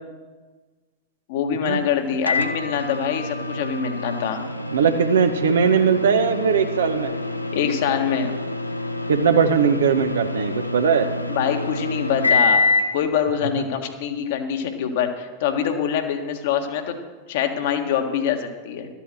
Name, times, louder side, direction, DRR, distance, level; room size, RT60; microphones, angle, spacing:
voice 1, 1.3-4.4 7.5-8.3 11.3-12.6 12.9-17.0 17.3-18.9, left 8 dB, 55° left, 5 dB, 1.6 m, -24 dB
Microwave oven, 2.3-13.0, left 2 dB, 85° left, 0.7 m, -26 dB
voice 2, 4.7-7.1 9.1-11.1, right 6 dB, 65° right, 8 dB, 1.1 m, -19 dB
12.5 x 8.3 x 7.5 m, 1.4 s
figure-of-eight pair, 90°, 0 cm